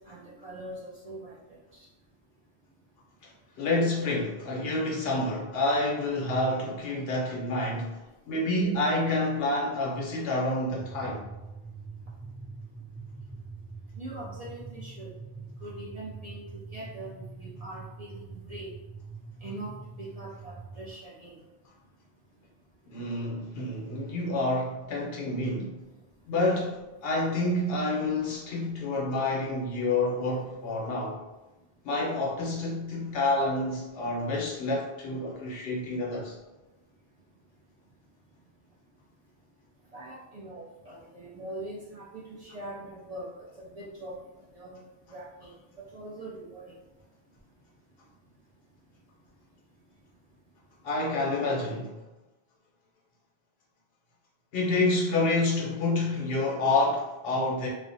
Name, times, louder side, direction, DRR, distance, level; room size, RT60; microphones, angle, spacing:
voice 1, 0.0-1.4 1.7-1.9 14.0-15.1 15.4-18.7 19.4-21.4 39.9-44.2 44.5-44.8 45.1-46.6, right 1 dB, 50° right, -7 dB, 0.4 m, -42 dB
voice 2, 3.6-8.0 8.3-11.2 22.9-25.8 26.3-31.2 31.8-36.4 50.8-52.0 54.5-57.7, left 2 dB, 65° left, -3 dB, 0.9 m, -28 dB
sound 1, 10.7-20.9, right 4 dB, 30° left, 0.5 m, -44 dB
2.4 x 2.0 x 2.6 m, 1.0 s
omnidirectional pair, 1.1 m